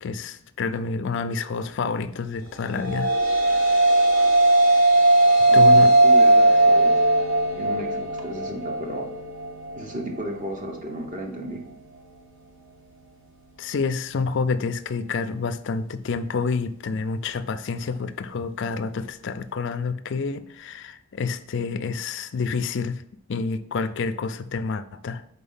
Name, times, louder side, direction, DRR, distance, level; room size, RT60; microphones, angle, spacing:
voice 1, 0.0-3.1 3.5-3.8 5.5-5.9 13.6-23.0 23.3-25.2, left 4 dB, 55° left, 12 dB, 0.4 m, -28 dB
sound 1, 2.6-11.2, right 2 dB, 60° right, 2.0 m, -19 dB
voice 2, 5.4-7.1 7.5-9.1 9.7-11.6, right 1 dB, 35° right, 2 dB, 0.8 m, -34 dB
4.3 x 4.2 x 5.5 m, 0.74 s
head